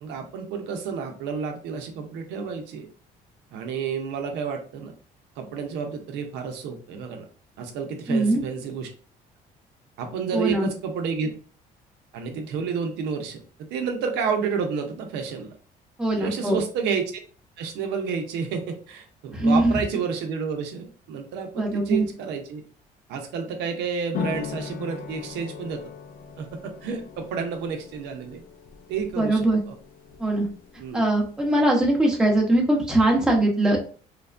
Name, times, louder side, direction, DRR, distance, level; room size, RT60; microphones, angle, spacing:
voice 1, 0.0-2.9 3.5-4.9 5.4-7.2 7.6-8.9 10.0-11.3 12.1-13.4 13.7-15.5 16.2-17.1 17.6-22.6 23.1-25.8 26.4-28.4 28.9-29.4 29.7-29.8 30.8-31.1, right 6 dB, 85° right, 4 dB, 0.6 m, -30 dB
voice 2, 8.1-8.4 10.3-10.7 16.0-16.6 19.3-19.8 21.6-22.0 29.2-29.6 30.2-30.5 30.9-33.8, right 1 dB, 5° right, -1 dB, 0.8 m, -21 dB
sound 1, 24.1-31.4, left 7 dB, 60° left, 0.5 m, -39 dB
3.2 x 2.1 x 2.4 m, 0.40 s
cardioid pair, 110°, 17 cm